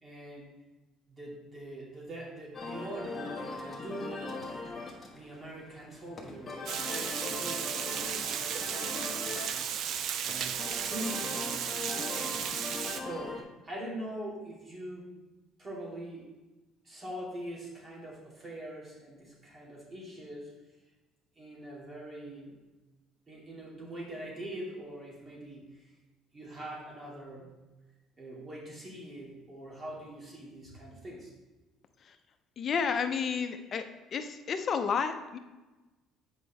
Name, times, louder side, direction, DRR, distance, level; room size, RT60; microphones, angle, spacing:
voice 1, 0.0-0.5 1.1-4.6 5.1-9.6 10.0-11.7 12.1-12.6 12.9-15.1 15.6-16.3 16.8-20.5 21.4-22.6 23.3-25.9 26.3-27.5 28.2-31.3, right 1 dB, 30° right, -4 dB, 2.4 m, -43 dB
sound 1, 2.5-13.4, left 3 dB, 20° left, 1.3 m, -41 dB
Water, 6.7-13.0, right 8 dB, 60° right, 0.4 m, -34 dB
voice 2, 32.6-33.8 34.1-35.4, left 6 dB, 40° left, 8 dB, 0.6 m, -31 dB
8.2 x 5.2 x 3.4 m, 1.1 s
cardioid pair, 110°, 0 cm